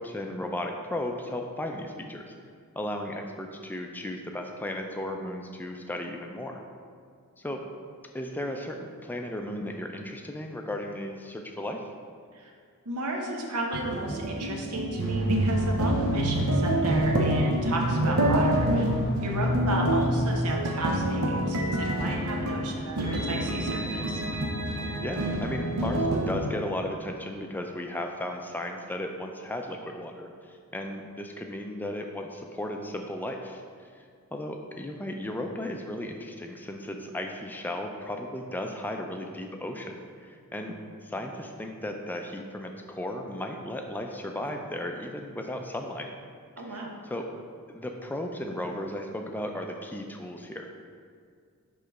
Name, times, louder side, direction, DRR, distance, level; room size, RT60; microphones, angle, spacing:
voice 1, 0.0-2.3 2.8-6.6 7.4-7.6 8.1-11.8 19.1-19.3 24.7-33.6 34.3-40.8 41.0-46.1 46.6-47.2 47.7-50.8, left 1 dB, 10° left, 3 dB, 0.4 m, -35 dB
voice 2, 12.8-18.9 19.2-24.2 40.5-40.9 46.6-46.9, right 1 dB, 85° right, 0 dB, 1.0 m, -34 dB
sound 1, 13.7-26.3, right 1 dB, 65° right, 0.7 m, -26 dB
5.1 x 3.8 x 5.8 m, 2.1 s
head